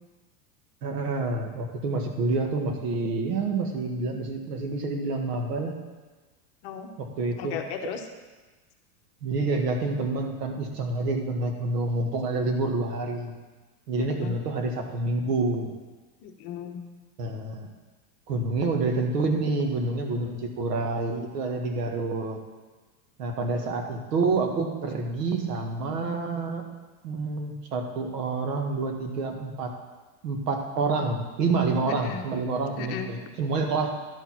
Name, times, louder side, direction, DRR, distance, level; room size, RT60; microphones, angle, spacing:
voice 1, 0.8-5.7 7.0-7.6 9.2-13.3 13.9-15.7 17.2-17.7 18.3-22.4 23.2-26.6 27.0-29.7 30.2-33.9, right 3 dB, 90° right, 3 dB, 1.8 m, -28 dB
voice 2, 7.4-8.0 14.0-14.3 16.2-16.8 31.9-32.2 32.8-33.1, left 7 dB, 40° left, 4 dB, 1.0 m, -35 dB
11.5 x 4.8 x 5.9 m, 1.3 s
supercardioid pair, 155°, 46 cm